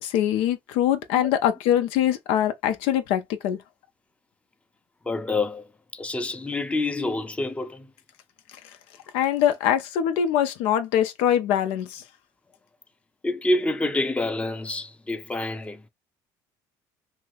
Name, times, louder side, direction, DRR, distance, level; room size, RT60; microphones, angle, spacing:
voice 1, 0.0-3.6 9.1-12.0, left 10 dB, 75° left, 0.4 m, -23 dB
voice 2, 5.1-5.7 5.9-7.9 13.2-15.8, left 2 dB, 10° left, 0.6 m, -27 dB
2.6 x 2.5 x 3.2 m
supercardioid pair, 80°, 10 cm